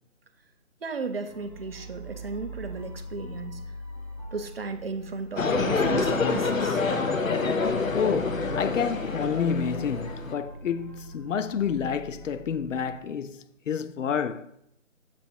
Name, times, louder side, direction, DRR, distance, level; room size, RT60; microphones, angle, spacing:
voice 1, 0.8-3.6 4.3-6.8, right 4 dB, 50° right, 0.6 m, -35 dB
sound 1, 1.3-13.0, right 1 dB, 25° left, 0.6 m, -42 dB
sound 2, 5.4-10.3, left 4 dB, 90° left, 0.9 m, -27 dB
voice 2, 7.9-14.5, left 7 dB, 70° left, 0.5 m, -29 dB
7.0 x 2.9 x 4.6 m
figure-of-eight pair, 160°, 39 cm